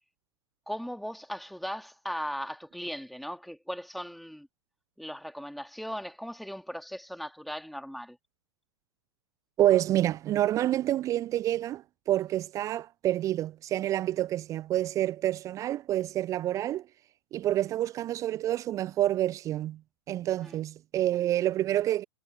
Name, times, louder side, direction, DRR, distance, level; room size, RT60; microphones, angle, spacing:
voice 1, 0.7-4.5 5.0-8.2 20.4-20.6, equal, ahead, 3.1 m, -38 dB
voice 2, 9.6-16.9 17.3-19.8 20.1-22.0, right 13 dB, 20° right, 0.6 m, -28 dB
figure-of-eight pair, 105°, 15 cm